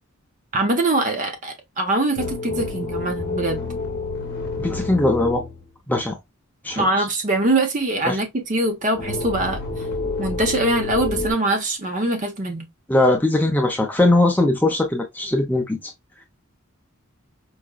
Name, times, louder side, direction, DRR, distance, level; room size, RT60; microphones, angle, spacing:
voice 1, 0.5-3.6 6.8-9.6 10.2-12.7, right 2 dB, 35° right, 0.6 m, -23 dB
Godzilla Roars, 2.2-5.6 8.9-11.3, left 3 dB, 45° left, 0.8 m, -28 dB
voice 2, 4.6-5.4 5.9-6.1 6.6-6.9 8.1-8.2 12.9-15.8, left 2 dB, 10° left, 0.5 m, -20 dB
4.7 x 2.1 x 2.2 m
head